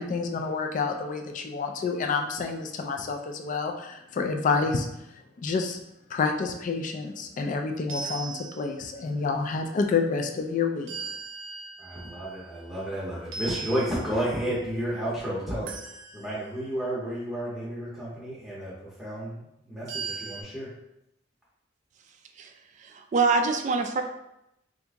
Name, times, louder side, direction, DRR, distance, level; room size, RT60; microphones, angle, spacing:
voice 1, 0.0-5.0 5.4-5.8 6.1-11.1, left 4 dB, 40° left, 4 dB, 0.3 m, -28 dB
sound 1, 7.9-9.1 10.9-12.9 13.3-14.5 15.7-16.7 19.9-20.4, right 4 dB, 90° right, 0.6 m, -39 dB
voice 2, 11.8-20.7, right 1 dB, ahead, -9 dB, 0.7 m, -32 dB
voice 3, 22.8-24.0, right 4 dB, 40° right, 5 dB, 0.3 m, -25 dB
2.8 x 2.5 x 3.4 m, 0.84 s
head